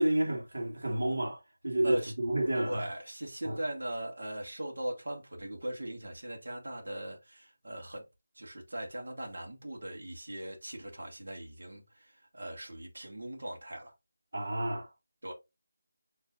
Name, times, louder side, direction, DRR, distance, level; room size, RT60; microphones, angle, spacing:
voice 1, 0.0-2.9 3.4-3.6 14.3-14.9, right 1 dB, 75° right, 1.8 m, -30 dB
voice 2, 2.5-8.0 8.3-13.9 15.2-15.3, right 1 dB, 60° right, 1.7 m, -39 dB
6.3 x 3.2 x 2.5 m
figure-of-eight pair, 180°, 0 cm